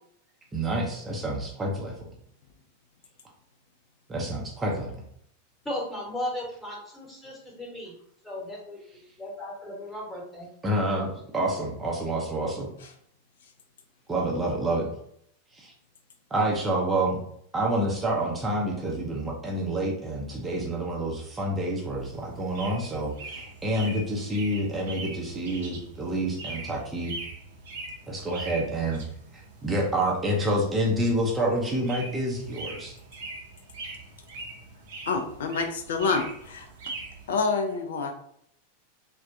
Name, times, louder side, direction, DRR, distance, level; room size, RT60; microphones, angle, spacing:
voice 1, 0.5-2.1 4.1-4.9 10.6-12.7 14.1-14.9 15.5-15.7 16.3-17.2 17.5-27.1 28.1-29.0 29.3-33.0, right 1 dB, 15° right, -2 dB, 0.5 m, -28 dB
voice 2, 5.6-7.9 8.2-8.8 9.2-10.5, left 1 dB, 10° left, -2 dB, 1.1 m, -36 dB
sound 1, 22.0-37.4, right 3 dB, 60° right, 0.6 m, -42 dB
voice 3, 35.1-36.7 37.3-38.1, left 4 dB, 60° left, 6 dB, 0.4 m, -27 dB
3.3 x 2.1 x 2.5 m, 0.69 s
figure-of-eight pair, 90°, 0 cm